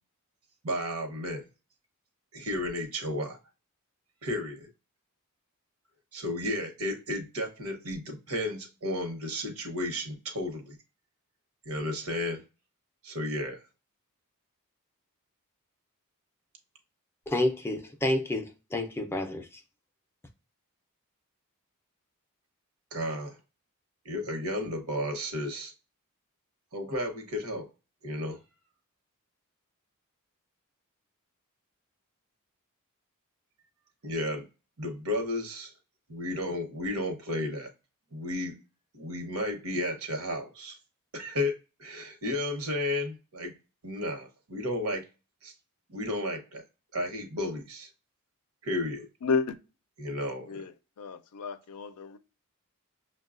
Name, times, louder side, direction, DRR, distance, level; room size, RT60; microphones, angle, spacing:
voice 1, 0.6-1.4 2.3-3.4 4.2-4.7 6.1-10.7 11.7-12.4 13.0-13.6 22.9-23.4 24.0-25.7 26.7-27.7 28.0-28.4 34.0-34.5 34.8-35.7 36.1-37.7 38.1-38.5 38.9-40.8 41.1-41.5 41.8-43.5 43.8-45.0 45.4-45.5 45.9-46.6 46.9-47.9 48.6-49.1 50.0-50.6, left 1 dB, 75° right, 0.9 m, -33 dB
voice 2, 17.3-19.6, left 1 dB, 10° left, 0.4 m, -29 dB
voice 3, 51.0-52.2, left 5 dB, 85° left, 0.5 m, -31 dB
6.2 x 2.2 x 2.4 m
head